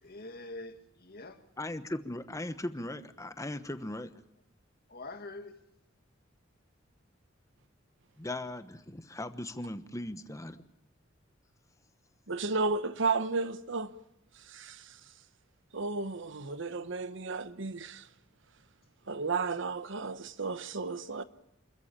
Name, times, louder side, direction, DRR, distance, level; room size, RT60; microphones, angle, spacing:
voice 1, 0.0-1.5 4.9-5.6, left 2 dB, 50° left, 2.1 m, -44 dB
voice 2, 1.6-4.1 8.2-10.6, left 1 dB, 15° left, 1.1 m, -38 dB
voice 3, 12.3-13.9 14.3-15.0 15.7-18.1 19.1-21.2, right 4 dB, 65° right, 1.0 m, -33 dB
27.0 x 14.5 x 8.7 m
head